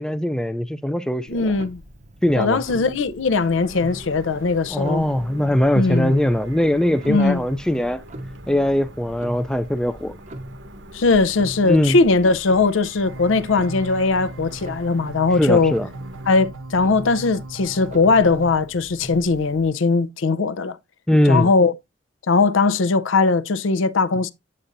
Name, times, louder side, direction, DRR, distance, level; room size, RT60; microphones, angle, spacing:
voice 1, 0.0-1.5 2.2-2.6 4.7-8.0 8.5-10.2 11.7-12.0 15.4-15.9 21.1-21.5, left 1 dB, 5° left, 0.3 m, -21 dB
voice 2, 1.3-1.8 2.4-5.0 5.7-6.1 7.1-7.5 10.9-15.7 16.3-20.8 21.3-21.7 22.3-24.3, left 3 dB, 80° left, 0.6 m, -19 dB
Clock, 1.3-19.7, right 1 dB, 35° right, 0.6 m, -41 dB
sound 1, 3.2-16.4, right 1 dB, 70° right, 1.0 m, -45 dB
sound 2, 13.1-18.5, right 2 dB, 85° right, 0.6 m, -37 dB
8.5 x 7.8 x 2.6 m
head